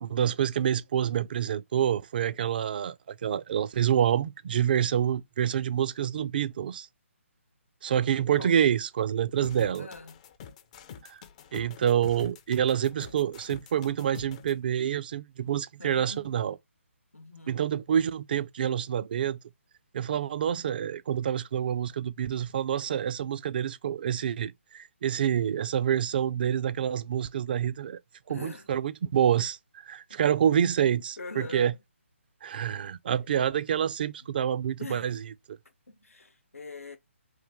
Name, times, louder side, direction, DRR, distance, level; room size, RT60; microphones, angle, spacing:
voice 1, 0.0-3.0 3.2-6.9 7.8-9.9 11.1-11.2 11.5-16.6 17.5-19.4 19.9-28.0 28.3-29.6 29.8-31.7 32.4-35.2 35.5-35.6, right 9 dB, 45° right, 0.4 m, -27 dB
sound 1, 9.4-14.5, left 7 dB, 30° left, 0.4 m, -46 dB
voice 2, 9.8-10.2 15.8-16.4 17.1-17.8 28.3-28.7 30.1-30.4 31.2-31.8 32.5-32.6 34.8-35.2 35.9-37.0, left 3 dB, 90° left, 0.9 m, -43 dB
3.2 x 2.6 x 3.4 m
figure-of-eight pair, 150°, 7 cm